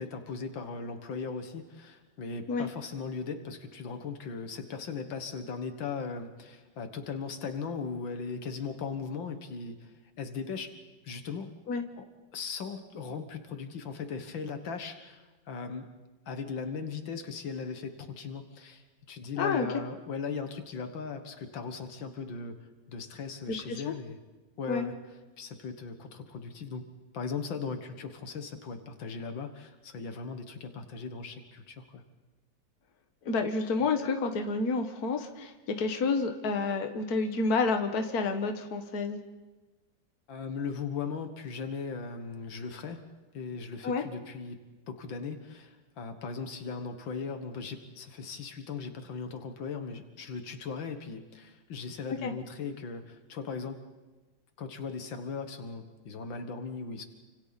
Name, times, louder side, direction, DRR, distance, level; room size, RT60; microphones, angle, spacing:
voice 1, 0.0-10.7 11.0-11.5 12.0-12.1 12.3-15.9 16.3-22.6 22.9-24.2 24.6-25.0 25.4-26.8 27.1-32.0 40.3-43.0 43.3-44.6 44.9-53.8 54.6-57.0, left 5 dB, 85° left, 7 dB, 2.2 m, -38 dB
voice 2, 19.4-19.7 23.5-23.6 23.9-24.0 24.7-24.8 33.2-39.2 43.8-44.0 52.2-52.3, left 4 dB, 55° left, 6 dB, 1.9 m, -29 dB
29.5 x 25.5 x 4.2 m, 1.2 s
omnidirectional pair, 2.0 m